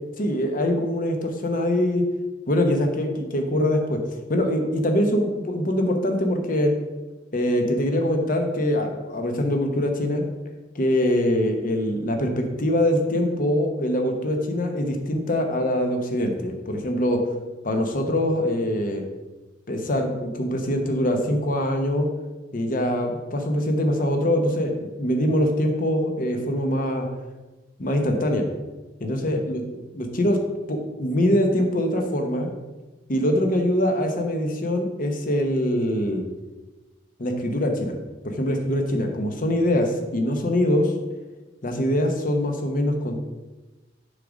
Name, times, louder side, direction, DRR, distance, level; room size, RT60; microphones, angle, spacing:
voice 1, 0.2-2.0 2.5-4.0 4.3-6.7 7.3-10.2 10.7-17.2 17.6-19.0 19.7-22.1 22.5-27.1 27.8-28.4 29.0-30.4 30.7-32.5 33.1-36.2 37.2-38.0 38.2-40.9 41.6-43.3, left 1 dB, 45° left, 4 dB, 0.9 m, -23 dB
6.5 x 3.8 x 5.1 m, 1.2 s
head